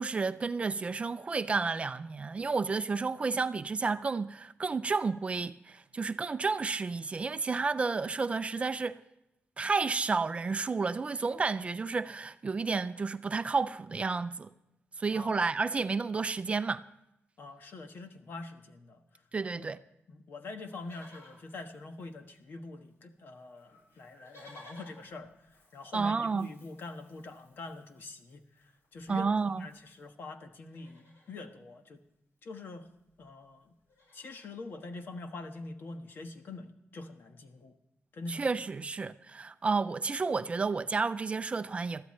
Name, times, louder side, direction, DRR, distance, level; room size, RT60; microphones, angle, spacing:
voice 1, 0.0-9.0 9.6-14.5 15.0-16.8 19.3-19.8 25.9-26.5 29.1-29.7 38.3-42.0, right 4 dB, 30° right, 0.4 m, -31 dB
voice 2, 17.4-19.0 19.5-19.6 20.1-25.3 25.7-29.3 29.6-32.0 32.4-32.8 33.2-33.7 34.1-37.7 38.1-38.4, left 3 dB, 55° left, 1.3 m, -44 dB
Livestock farm animals working animals, 20.6-22.6 22.8-22.9 23.2-30.1 30.5-31.5 32.7-32.8 33.0-33.2 33.6-34.5 35.2-35.3, left 1 dB, 85° left, 7.2 m, -59 dB
21.5 x 14.0 x 3.2 m
wide cardioid pair, 175°, 4 cm